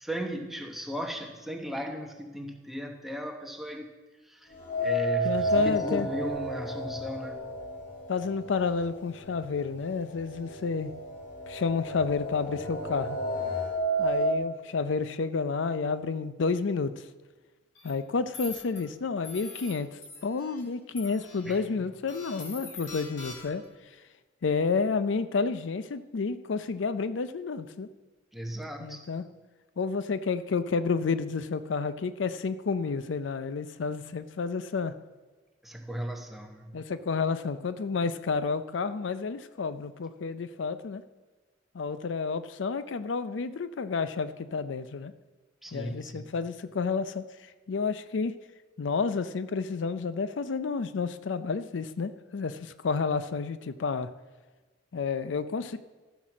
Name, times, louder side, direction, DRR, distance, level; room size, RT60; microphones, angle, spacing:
voice 1, 0.0-3.9 4.2-4.5 4.8-7.4 21.5-21.6 28.3-29.0 35.6-36.8 45.6-46.4, equal, ahead, 3 dB, 1.0 m, -36 dB
sound 1, 4.5-8.6 8.9-9.0 10.0-10.1 10.5-14.3, right 1 dB, 50° left, 2.8 m, -31 dB
voice 2, 5.2-6.1 8.1-10.9 11.5-13.2 14.0-17.0 17.8-19.9 20.2-23.6 24.4-27.9 28.8-29.3 29.8-34.9 36.7-41.0 41.7-45.1 45.7-47.2 47.7-48.4 48.8-54.1 54.9-55.8, left 4 dB, 90° left, 13 dB, 0.5 m, -30 dB
sound 2, 17.7-17.9 18.3-18.8 19.2-19.7 20.0-20.6 21.0-21.5 22.1-23.6, left 4 dB, 70° left, 2.9 m, -43 dB
14.0 x 6.1 x 6.1 m, 1.3 s
head